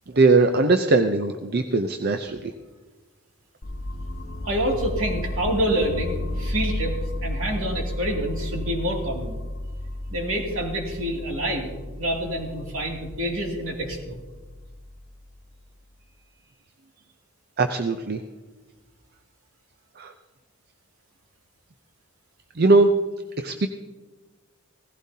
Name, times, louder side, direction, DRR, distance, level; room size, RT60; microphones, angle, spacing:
voice 1, 0.1-2.5 17.6-18.2 20.0-20.1 22.5-22.9 23.4-23.7, right 3 dB, 45° right, 7 dB, 0.6 m, -20 dB
sound 1, 3.6-15.5, left 1 dB, 50° left, 1.1 m, -33 dB
voice 2, 4.4-9.4 10.1-14.2, right 1 dB, 70° right, 0 dB, 2.6 m, -27 dB
17.0 x 15.5 x 2.8 m, 1.2 s
head